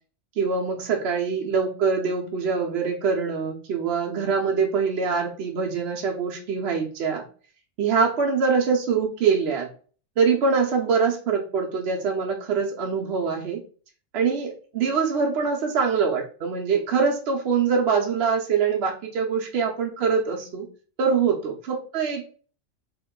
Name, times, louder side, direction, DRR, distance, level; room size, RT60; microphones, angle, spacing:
voice 1, 0.4-7.3 7.8-9.7 10.2-13.6 14.1-20.7 21.0-22.2, right 5 dB, 65° right, 0 dB, 0.8 m, -24 dB
3.0 x 2.9 x 3.6 m, 0.41 s
omnidirectional pair, 1.3 m